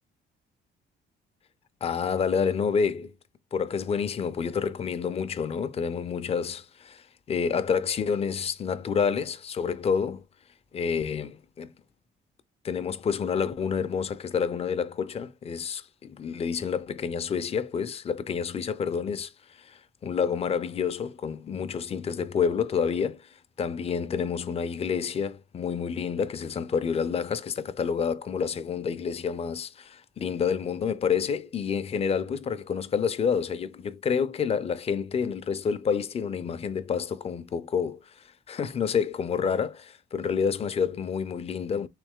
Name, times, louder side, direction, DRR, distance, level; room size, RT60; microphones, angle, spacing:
voice 1, 1.8-3.1 3.5-10.2 10.7-11.7 12.6-23.3 23.6-41.9, left 6 dB, 30° left, 0.4 m, -29 dB
3.2 x 2.9 x 3.5 m
cardioid pair, 90°, 20 cm